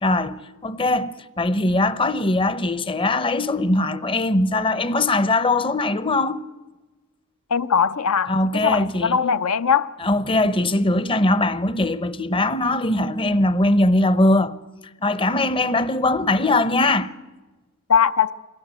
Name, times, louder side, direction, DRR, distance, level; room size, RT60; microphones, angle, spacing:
voice 1, 0.0-6.4 8.3-9.2 10.0-14.6 15.0-17.1, left 2 dB, 25° left, 0.7 m, -21 dB
voice 2, 7.5-9.9 17.9-18.3, left 7 dB, 75° left, 0.7 m, -20 dB
23.5 x 17.0 x 8.9 m
head